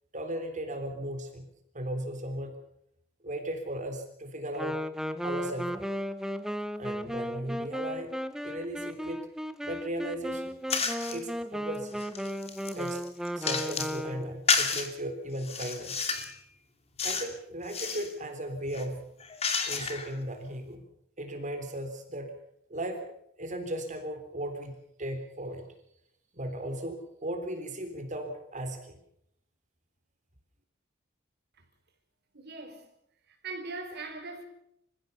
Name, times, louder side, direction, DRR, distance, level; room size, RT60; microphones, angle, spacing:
voice 1, 0.1-1.5 1.7-2.5 3.2-4.8 5.2-5.9 6.8-8.1 8.4-9.3 9.6-10.5 11.1-12.0 12.7-13.0 13.4-16.0 17.0-19.1 19.6-20.8 21.2-22.3 22.7-23.1 23.4-24.7 25.0-25.7 26.3-29.0, right 1 dB, 40° right, 3.5 m, -36 dB
Wind instrument woodwind instrument, 4.5-14.4, equal, 5° right, 1.0 m, -35 dB
sound 1, 10.7-11.2 11.7-14.0 14.5-14.9 15.4-16.3 17.0-17.3 17.6-18.1 18.7-20.1, left 5 dB, 30° left, 2.6 m, -31 dB
voice 2, 32.3-32.8 33.3-34.4, right 3 dB, 55° right, 4.8 m, -40 dB
27.0 x 15.5 x 7.0 m
head